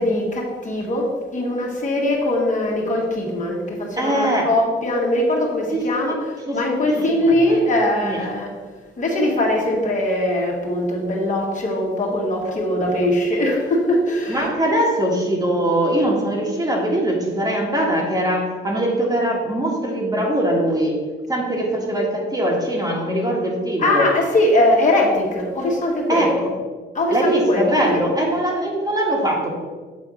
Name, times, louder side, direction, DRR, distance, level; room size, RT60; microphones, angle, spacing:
voice 1, 0.0-8.5 9.0-14.5 23.8-26.4 26.9-28.0, left 1 dB, 40° left, -2 dB, 1.6 m, -21 dB
voice 2, 4.0-4.5 5.7-6.1 6.5-6.6 7.0-7.5 8.0-8.2 14.3-21.0 21.3-24.1 26.1-26.3 27.1-29.5, right 1 dB, 20° right, -1 dB, 1.6 m, -21 dB
7.6 x 3.5 x 5.0 m, 1.4 s
cardioid pair, 90°, 20 cm